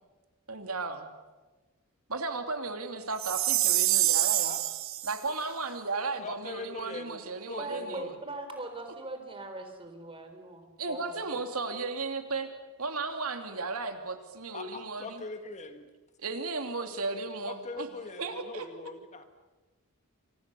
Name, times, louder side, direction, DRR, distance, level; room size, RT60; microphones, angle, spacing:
voice 1, 0.5-1.1 2.1-4.5 5.0-8.1 10.8-12.5 12.8-15.2 16.2-17.9 18.2-18.7, right 3 dB, 75° right, 6 dB, 2.7 m, -35 dB
Chime, 3.2-5.2, right 16 dB, 60° right, 1.1 m, -26 dB
voice 2, 4.3-4.6 5.3-5.4 6.2-8.2 14.5-15.9 17.1-19.2, left 2 dB, 30° left, 7 dB, 1.9 m, -42 dB
voice 3, 7.6-11.2, right 2 dB, 25° right, 6 dB, 4.0 m, -41 dB
29.5 x 25.0 x 6.9 m, 1.2 s
head